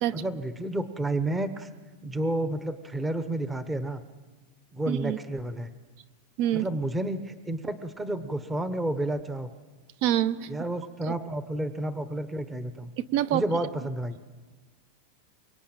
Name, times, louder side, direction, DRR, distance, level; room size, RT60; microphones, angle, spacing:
voice 1, 0.1-1.7 2.0-4.0 4.7-5.7 6.5-9.5 10.5-12.9 13.3-14.2, right 1 dB, 10° right, 10 dB, 0.9 m, -30 dB
voice 2, 4.9-5.2 6.4-6.7 10.0-10.5 11.1-11.2 13.0-13.4, right 12 dB, 45° right, 16 dB, 0.8 m, -26 dB
24.5 x 23.0 x 8.9 m, 1.4 s
supercardioid pair, 165°, 0 cm